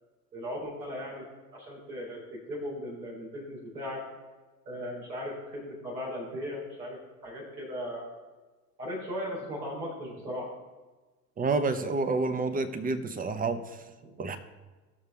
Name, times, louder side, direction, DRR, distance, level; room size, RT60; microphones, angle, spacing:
voice 1, 0.3-1.2 1.5-4.0 4.7-8.0 8.8-10.5 14.0-14.1, equal, 85° right, -5 dB, 3.9 m, -37 dB
voice 2, 11.4-13.8 14.2-14.4, right 3 dB, 15° right, 9 dB, 0.9 m, -29 dB
16.0 x 6.6 x 3.5 m, 1.3 s
figure-of-eight pair, 75°, 49 cm